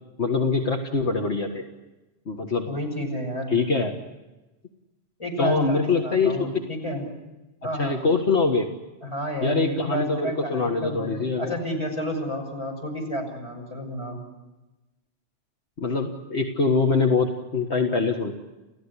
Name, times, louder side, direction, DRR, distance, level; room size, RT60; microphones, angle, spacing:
voice 1, 0.2-1.6 2.3-2.7 3.5-4.0 5.4-6.5 7.8-8.7 9.4-11.6 15.8-18.3, left 4 dB, 65° left, 3 dB, 2.0 m, -23 dB
voice 2, 2.7-3.5 5.2-7.0 7.6-8.0 9.0-14.2, equal, 25° left, 1 dB, 6.6 m, -31 dB
29.5 x 15.5 x 9.9 m, 1.1 s
omnidirectional pair, 1.2 m